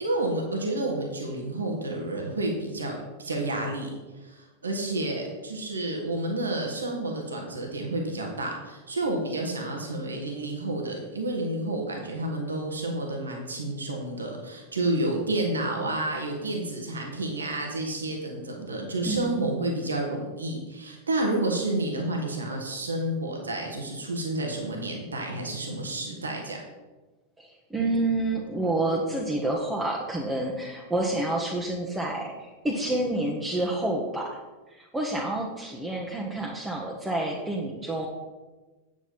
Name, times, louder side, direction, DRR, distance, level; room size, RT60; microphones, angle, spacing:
voice 1, 0.0-3.9 4.2-26.6, right 2 dB, 75° right, 1 dB, 1.7 m, -30 dB
voice 2, 27.4-34.4 34.7-38.1, right 2 dB, 10° right, -3 dB, 1.3 m, -28 dB
8.8 x 8.1 x 4.3 m, 1.2 s
figure-of-eight pair, 90°, 0 cm